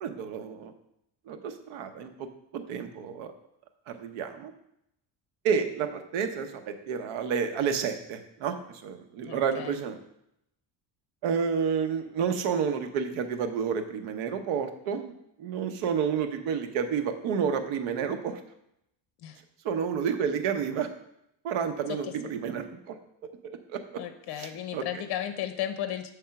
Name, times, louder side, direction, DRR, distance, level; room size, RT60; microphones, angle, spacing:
voice 1, 0.0-0.7 1.3-2.3 2.5-3.3 3.9-4.5 5.4-8.5 8.8-10.0 11.2-15.1 15.4-18.4 19.6-20.9 21.4-22.9 23.7-23.8 24.4-24.8, right 6 dB, 90° right, 8 dB, 0.9 m, -30 dB
voice 2, 9.2-9.8 19.2-19.4 21.9-22.1 23.9-26.1, left 11 dB, 55° left, 8 dB, 0.7 m, -34 dB
7.6 x 3.5 x 5.7 m, 0.79 s
cardioid pair, 150°, 47 cm